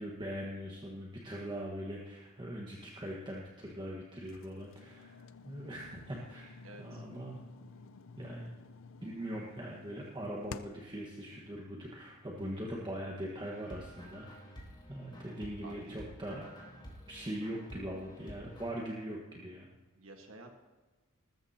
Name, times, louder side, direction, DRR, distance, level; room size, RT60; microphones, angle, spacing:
voice 1, 0.0-7.4 8.2-8.5 9.0-14.3 14.9-16.4 17.1-19.7, equal, 20° right, -3 dB, 1.5 m, -41 dB
sound 1, 4.3-11.0, left 5 dB, 65° left, 0.5 m, -51 dB
voice 2, 6.6-7.0 15.6-16.0 19.9-20.6, right 2 dB, 65° right, 3 dB, 1.6 m, -51 dB
sound 2, 13.4-18.7, equal, 20° left, 4.0 m, -51 dB
19.5 x 14.0 x 2.9 m, 1.2 s
head